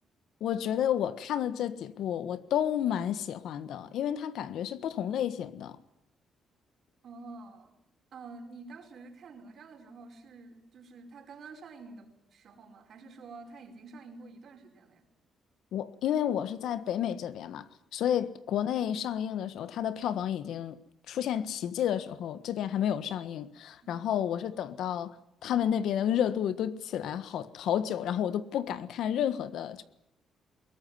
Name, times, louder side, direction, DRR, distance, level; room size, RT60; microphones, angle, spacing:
voice 1, 0.4-5.8 15.7-20.8 21.1-25.1 25.4-29.8, left 10 dB, 80° left, 1.4 m, -31 dB
voice 2, 7.0-7.7 8.1-15.0 23.8-24.5, right 3 dB, 60° right, 4.9 m, -49 dB
21.5 x 18.5 x 9.7 m
cardioid pair, 90°, 0 cm